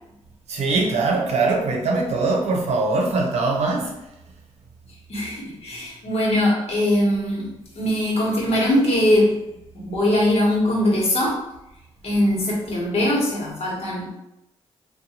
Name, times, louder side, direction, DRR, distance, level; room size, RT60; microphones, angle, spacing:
voice 1, 0.5-4.0, right 3 dB, 75° right, 0 dB, 0.7 m, -22 dB
voice 2, 5.1-9.4 9.7-11.5 12.0-14.1, left 1 dB, 65° left, -3 dB, 1.1 m, -21 dB
2.7 x 2.2 x 2.8 m, 0.87 s
supercardioid pair, 60°, 11 cm